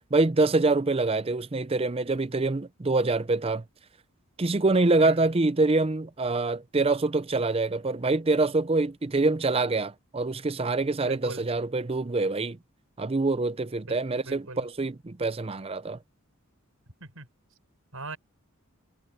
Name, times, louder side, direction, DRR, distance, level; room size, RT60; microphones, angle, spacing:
voice 1, 0.1-3.6 4.4-12.6 13.0-16.0, right 3 dB, 25° right, 0.6 m, -25 dB
voice 2, 11.1-11.4 13.9-14.6 17.0-17.3 17.9-18.2, right 3 dB, 75° right, 6.3 m, -40 dB
head